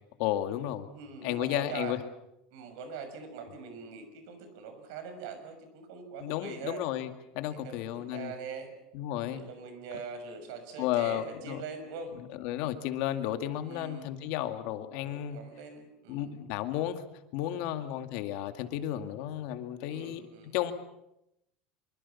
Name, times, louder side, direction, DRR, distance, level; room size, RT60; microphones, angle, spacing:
voice 1, 0.2-0.9 1.2-2.0 6.2-8.3 8.9-9.5 10.8-11.6 12.4-15.4 16.1-17.0 17.3-20.2 20.5-20.7, left 12 dB, 55° left, 8 dB, 2.2 m, -33 dB
voice 2, 0.9-1.9 2.5-6.8 7.5-8.7 9.3-12.1 13.6-14.1 15.0-16.4 17.5-17.9 19.9-20.6, right 5 dB, 70° right, 8 dB, 6.3 m, -43 dB
25.5 x 23.5 x 7.2 m, 0.84 s
cardioid pair, 175°, 2 cm